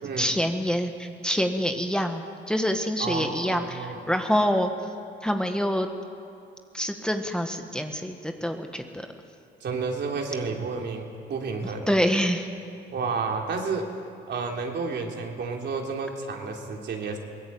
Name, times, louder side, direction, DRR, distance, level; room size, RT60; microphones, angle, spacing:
voice 1, 0.2-2.2 2.5-4.7 5.2-5.9 6.7-9.1 11.9-12.5, equal, 5° left, 5 dB, 1.7 m, -26 dB
voice 2, 3.0-4.0 9.6-11.9 12.9-13.9 14.3-17.2, right 4 dB, 60° right, 1 dB, 3.4 m, -31 dB
22.5 x 19.0 x 8.8 m, 2.6 s
cardioid pair, 90°, 20 cm